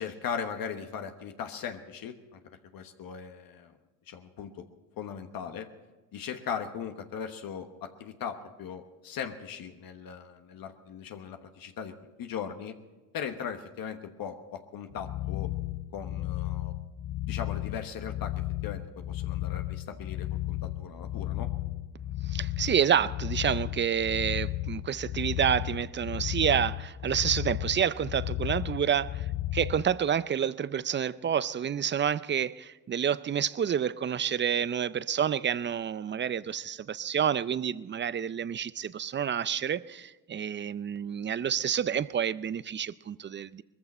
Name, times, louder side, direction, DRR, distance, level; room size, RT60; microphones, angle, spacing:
voice 1, 0.0-2.4 2.7-3.7 4.1-4.5 5.0-5.7 6.1-11.9 12.2-12.7 13.1-15.5 15.9-16.7 17.3-18.3 18.6-18.8 19.1-21.5, left 7 dB, 70° left, 1.2 m, -38 dB
sound 1, 14.9-29.9, left 15 dB, 55° left, 0.5 m, -34 dB
voice 2, 22.3-29.3 29.5-43.6, right 8 dB, 30° right, 0.5 m, -29 dB
20.0 x 14.5 x 4.3 m
cardioid pair, 80°, 36 cm